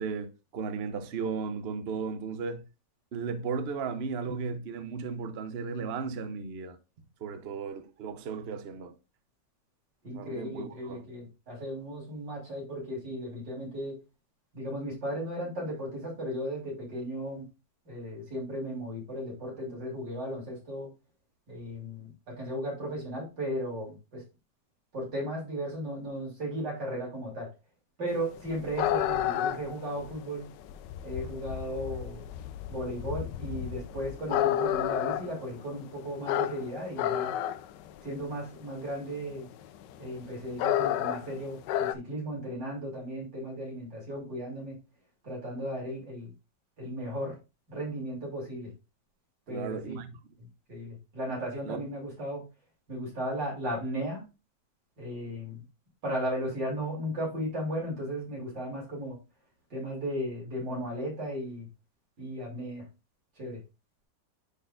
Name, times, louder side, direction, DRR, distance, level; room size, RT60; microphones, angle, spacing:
voice 1, 0.0-2.6 3.1-6.8 7.2-9.0 10.1-11.0 49.5-50.1 51.6-51.9, right 5 dB, 55° right, 0.7 m, -35 dB
voice 2, 10.0-14.0 14.5-17.5 17.9-20.9 21.5-24.2 24.9-27.5 28.0-30.5 31.0-32.3 32.7-37.3 38.0-39.5 40.0-44.8 45.2-46.3 46.8-47.3 47.7-48.7 49.5-50.0 50.4-52.4 52.9-54.2 55.0-55.6 56.0-59.2 59.7-61.7 62.2-62.9 63.4-63.6, equal, 80° right, 3.8 m, -35 dB
sound 1, 28.2-41.9, left 11 dB, 80° left, 1.2 m, -31 dB
10.0 x 4.3 x 2.4 m
omnidirectional pair, 1.9 m